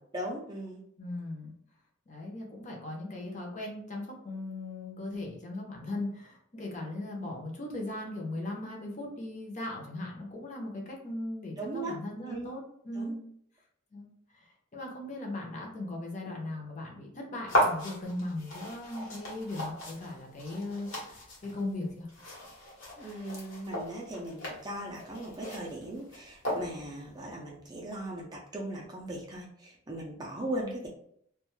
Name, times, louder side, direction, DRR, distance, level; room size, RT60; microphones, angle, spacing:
voice 1, 0.1-0.8 11.6-12.0 12.3-12.5 13.0-13.1 23.0-30.9, right 1 dB, 20° right, -2 dB, 0.4 m, -38 dB
voice 2, 1.0-1.5 2.1-13.2 13.9-14.1 14.3-22.1, left 2 dB, 35° left, -1 dB, 0.6 m, -38 dB
sound 1, 17.5-27.0, equal, 70° left, 1.0 m, -35 dB
2.4 x 2.2 x 3.0 m, 0.68 s
head